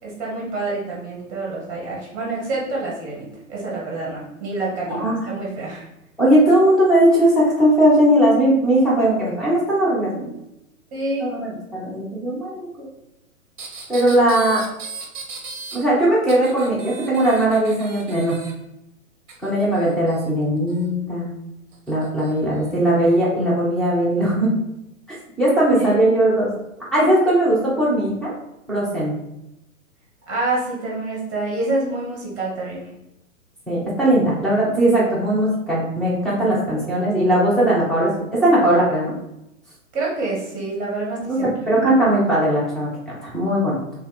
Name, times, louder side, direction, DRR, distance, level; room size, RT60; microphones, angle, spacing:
voice 1, 0.0-5.9 10.9-11.3 25.7-26.1 30.3-32.9 39.9-41.9, right 2 dB, 20° right, -4 dB, 1.1 m, -27 dB
voice 2, 6.2-10.3 11.2-12.6 13.9-14.6 15.7-18.4 19.4-21.3 21.9-24.5 25.4-26.5 26.9-28.3 28.7-29.1 33.7-39.1 41.2-41.4 41.7-43.8, right 1 dB, ahead, -8 dB, 0.8 m, -19 dB
sound 1, 13.6-15.8 16.3-18.5 19.3-20.9 21.7-22.3 23.1-23.2, right 4 dB, 35° right, 0.8 m, -37 dB
3.2 x 2.7 x 3.8 m, 0.86 s
figure-of-eight pair, 115°, 42 cm